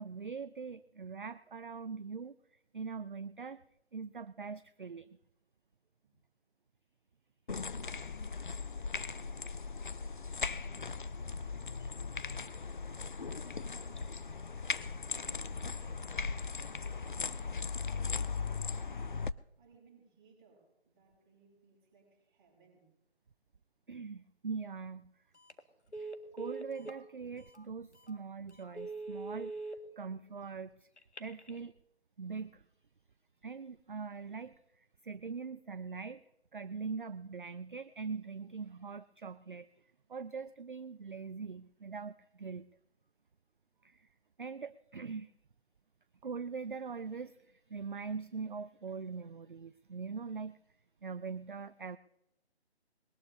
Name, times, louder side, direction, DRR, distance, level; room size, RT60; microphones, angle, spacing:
voice 1, 0.0-3.6 3.9-5.2 23.9-25.1 26.0-29.6 30.0-30.9 31.2-31.7 32.2-32.6 33.4-39.7 40.1-42.7 43.8-44.1 44.4-45.3 46.2-50.6 51.0-52.0, right 5 dB, 50° right, 14 dB, 0.5 m, -42 dB
sound 1, 7.5-19.3, left 4 dB, 50° left, 0.5 m, -38 dB
voice 2, 9.8-12.8 13.6-14.6 15.0-19.1 19.6-22.9, right 4 dB, 15° right, -3 dB, 6.5 m, -64 dB
Telephone, 25.3-25.6 25.9-27.0 27.5-27.6 28.1-28.2 28.6-29.7 31.0-31.6, right 3 dB, 85° left, 1.9 m, -42 dB
21.0 x 19.5 x 2.7 m, 0.86 s
figure-of-eight pair, 150°, 33 cm